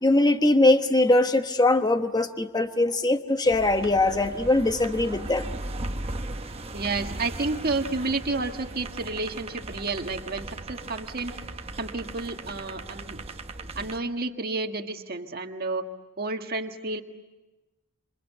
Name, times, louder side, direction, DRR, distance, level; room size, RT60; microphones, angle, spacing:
voice 1, 0.0-5.5, left 2 dB, 20° left, 8 dB, 1.2 m, -21 dB
sound 1, 3.4-14.0, right 2 dB, 30° right, 1.0 m, -37 dB
voice 2, 6.7-11.3 11.8-13.2 13.7-15.9 16.2-17.0, right 3 dB, 45° right, 5 dB, 1.7 m, -30 dB
27.5 x 26.0 x 8.1 m, 1.1 s
head